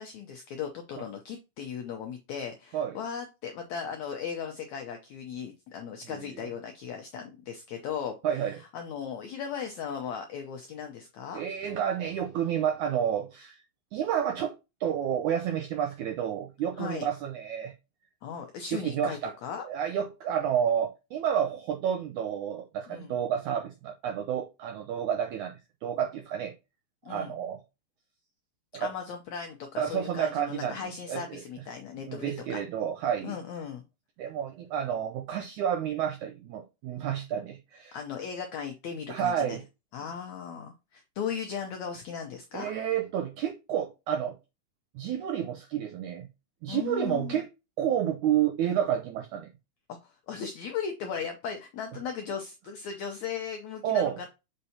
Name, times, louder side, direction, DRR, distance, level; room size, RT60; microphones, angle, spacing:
voice 1, 0.0-11.4 16.8-17.1 18.2-19.6 22.9-23.2 27.0-27.3 28.8-32.6 33.2-33.8 37.9-39.6 39.9-42.7 46.7-47.4 49.9-54.3, left 7 dB, 85° left, 1.6 m, -37 dB
voice 2, 8.2-8.6 11.3-13.6 13.9-14.5 14.8-17.7 18.7-19.3 19.6-26.5 27.1-27.6 28.7-28.9 29.8-30.8 31.1-31.4 32.0-33.4 34.2-38.0 39.1-39.6 42.5-44.4 44.9-46.3 46.6-47.5 47.8-49.5 53.8-54.2, right 9 dB, 85° right, 1.7 m, -30 dB
6.7 x 5.5 x 2.8 m
omnidirectional pair, 4.4 m